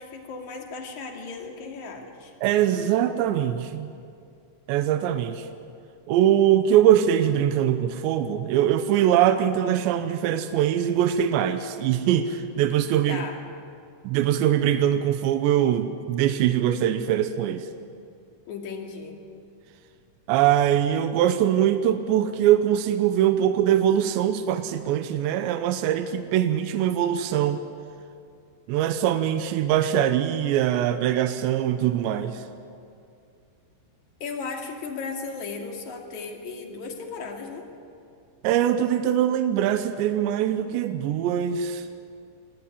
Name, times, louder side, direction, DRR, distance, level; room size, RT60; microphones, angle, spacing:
voice 1, 0.0-2.3 13.1-13.4 18.5-19.2 34.2-37.7, left 4 dB, 45° left, 2 dB, 3.2 m, -36 dB
voice 2, 2.4-3.9 4.7-5.5 6.1-13.2 14.0-17.7 20.3-27.6 28.7-32.4 38.4-41.9, right 10 dB, 80° right, 9 dB, 3.1 m, -22 dB
25.0 x 18.5 x 9.9 m, 2.4 s
omnidirectional pair, 5.2 m